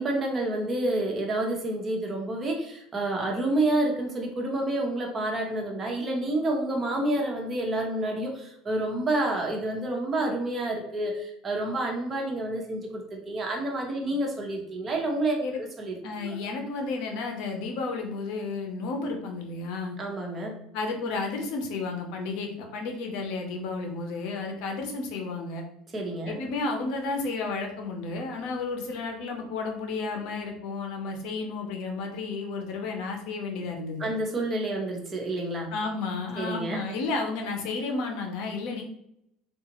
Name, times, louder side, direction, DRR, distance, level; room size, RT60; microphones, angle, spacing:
voice 1, 0.0-16.4 20.0-20.6 25.9-26.4 34.0-35.7 36.4-36.8, right 1 dB, 25° right, 0 dB, 0.8 m, -29 dB
voice 2, 16.0-20.0 20.7-25.7 26.3-34.1 35.7-38.8, left 3 dB, 65° left, 3 dB, 0.7 m, -32 dB
3.7 x 2.3 x 2.9 m, 0.76 s
cardioid pair, 130°, 0 cm